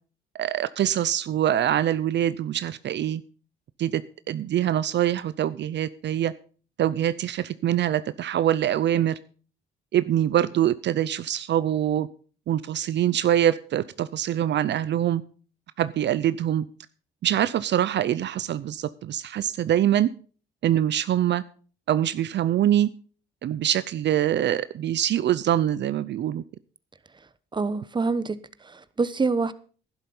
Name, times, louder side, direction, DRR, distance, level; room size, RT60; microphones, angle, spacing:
voice 1, 0.4-3.2 3.8-4.0 4.3-6.3 6.8-9.2 9.9-12.1 12.5-15.2 15.8-16.7 17.2-20.1 20.6-21.4 21.9-22.9 23.4-26.4, right 11 dB, 60° right, 0.6 m, -24 dB
voice 2, 27.5-29.5, right 4 dB, 25° right, 1.0 m, -26 dB
11.5 x 11.0 x 5.5 m
cardioid pair, 90°, 20 cm